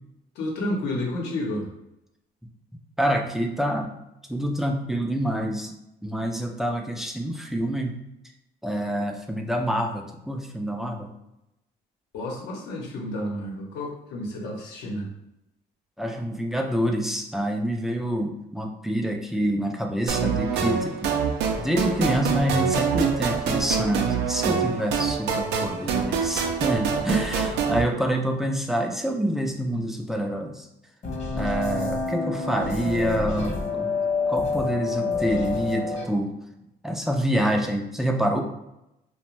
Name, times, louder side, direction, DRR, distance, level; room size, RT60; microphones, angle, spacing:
voice 1, 0.3-1.7 12.1-15.1, left 1 dB, 85° left, -1 dB, 0.8 m, -30 dB
voice 2, 3.0-3.9 4.3-5.7 6.0-8.0 8.6-11.1 16.0-21.2 21.6-30.7 31.4-34.0 34.3-36.3 36.8-38.5, equal, ahead, 2 dB, 0.3 m, -27 dB
sound 1, 20.1-27.8, right 6 dB, 80° right, 0.4 m, -25 dB
sound 2, 31.0-36.0, left 3 dB, 40° left, 0.7 m, -28 dB
2.5 x 2.1 x 3.0 m, 0.87 s
cardioid pair, 110°, 17 cm